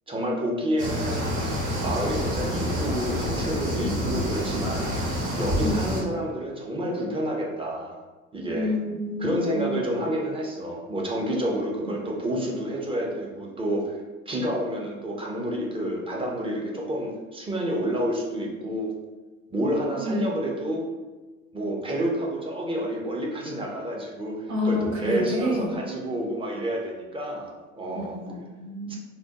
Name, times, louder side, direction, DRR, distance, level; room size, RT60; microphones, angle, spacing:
voice 1, 0.1-1.3 1.8-7.9 8.3-8.7 9.2-14.0 14.3-18.9 19.5-20.8 21.5-28.2 28.9-29.0, equal, 15° right, -2 dB, 0.5 m, -29 dB
sound 1, 0.8-6.0, equal, 55° right, 1.3 m, -28 dB
voice 2, 8.5-9.8 20.0-20.3 24.5-25.7 27.9-29.0, left 1 dB, 75° right, -1 dB, 0.8 m, -28 dB
3.4 x 2.1 x 2.8 m, 1.3 s
figure-of-eight pair, 60°, 41 cm